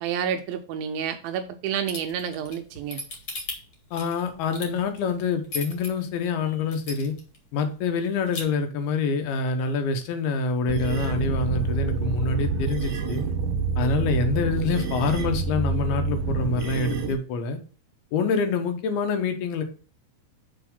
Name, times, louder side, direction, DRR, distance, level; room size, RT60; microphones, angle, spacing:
voice 1, 0.0-3.0, right 8 dB, 80° right, 7 dB, 2.2 m, -29 dB
sound 1, 1.9-5.9 6.3-6.4 6.7-7.4 7.7-7.8 8.0-8.4, left 3 dB, 40° left, 2.0 m, -35 dB
voice 2, 3.9-7.2 7.5-13.2 13.8-17.6 18.1-19.6, left 4 dB, 75° left, 6 dB, 2.8 m, -26 dB
sound 2, 10.7-17.1, right 4 dB, 65° right, 2.4 m, -27 dB
7.1 x 4.1 x 5.3 m, 0.38 s
omnidirectional pair, 4.6 m